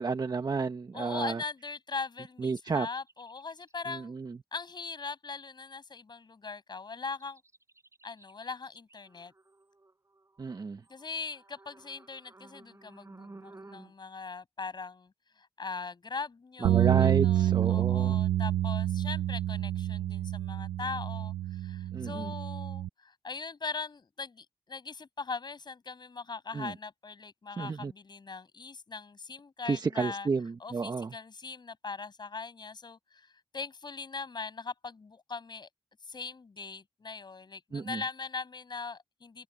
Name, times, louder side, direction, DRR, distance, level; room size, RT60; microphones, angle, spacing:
voice 1, 0.0-1.4 2.4-2.9 3.9-4.4 10.4-10.8 16.6-18.2 21.9-22.3 26.5-26.7 27.6-27.9 29.6-31.1 37.7-38.0, right 4 dB, 50° right, 1.3 m, -31 dB
voice 2, 0.9-4.1 4.5-7.4 8.0-9.3 10.9-30.3 30.6-35.7 36.0-39.4, left 4 dB, 55° left, 6.3 m, -40 dB
sound 1, 3.0-3.9 7.0-13.9, right 2 dB, 30° right, 5.7 m, -55 dB
sound 2, 16.6-22.9, right 13 dB, 90° right, 0.4 m, -28 dB
open air
supercardioid pair, 40°, 9 cm